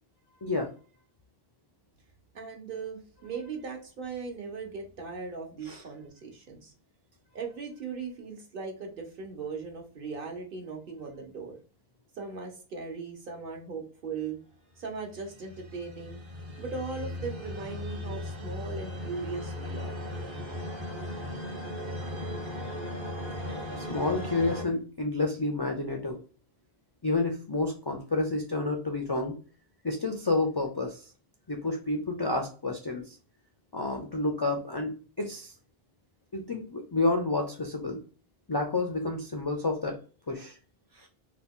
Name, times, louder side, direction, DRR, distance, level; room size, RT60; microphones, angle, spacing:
voice 1, 0.4-0.7 5.6-5.8 23.8-26.2 27.0-29.4 29.8-31.1 31.5-33.2 33.7-35.5 36.3-38.0 38.5-40.0 40.3-40.6 40.9-41.1, left 2 dB, 40° left, 1 dB, 0.3 m, -30 dB
voice 2, 2.3-6.7 7.3-11.6 12.2-14.4 14.8-16.2 16.6-20.0, right 4 dB, 60° right, 2 dB, 1.0 m, -38 dB
sound 1, 15.0-24.6, left 1 dB, 35° right, 0.6 m, -37 dB
2.8 x 2.2 x 3.6 m, 0.39 s
omnidirectional pair, 1.0 m